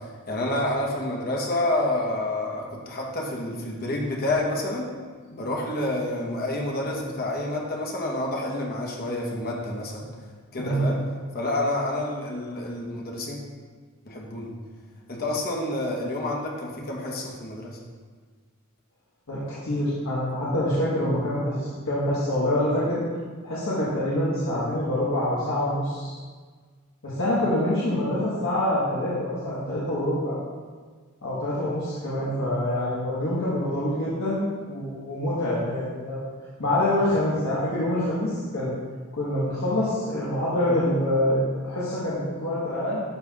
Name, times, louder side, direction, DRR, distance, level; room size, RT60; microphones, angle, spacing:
voice 1, 0.0-4.9 5.3-10.1 10.5-11.0 11.3-13.4 14.0-14.5 15.1-17.8 27.9-28.0, left 1 dB, 45° left, -1 dB, 1.0 m, -28 dB
voice 2, 19.3-23.0 23.4-26.1 27.0-30.3 31.2-36.2 36.6-38.8 39.1-43.0, left 1 dB, 65° left, -10 dB, 1.4 m, -26 dB
11.0 x 4.2 x 2.4 m, 1.5 s
head